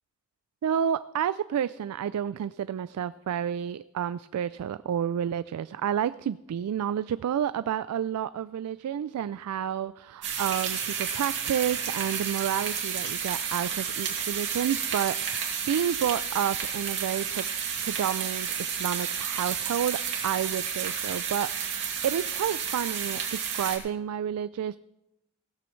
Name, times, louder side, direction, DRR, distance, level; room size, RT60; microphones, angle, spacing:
voice 1, 0.6-17.5 17.8-24.8, right 9 dB, 90° right, 15 dB, 0.3 m, -30 dB
sound 1, 10.2-23.8, right 7 dB, 55° right, 2.3 m, -31 dB
16.0 x 13.0 x 3.2 m, 0.89 s
head